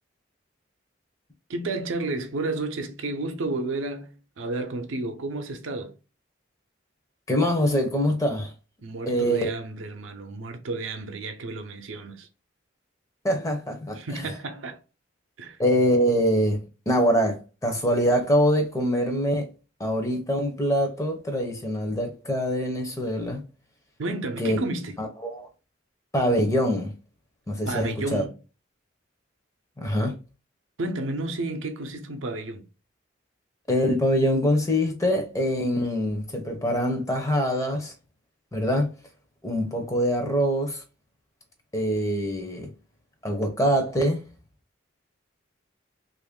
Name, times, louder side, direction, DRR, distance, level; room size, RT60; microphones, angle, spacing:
voice 1, 1.5-5.9 8.8-12.3 14.0-14.8 15.4-15.6 24.0-25.0 27.7-28.3 30.8-32.6, right 2 dB, 85° right, 0.6 m, -31 dB
voice 2, 7.3-8.5 9.1-9.5 13.2-14.2 15.6-19.5 19.8-23.4 24.4-24.6 25.0-25.5 26.1-26.9 27.5-28.2 29.8-30.1 33.7-37.9 38.5-38.9 39.4-40.8 41.7-42.7 43.2-44.2, equal, 15° left, 0.6 m, -24 dB
3.0 x 2.5 x 3.5 m
head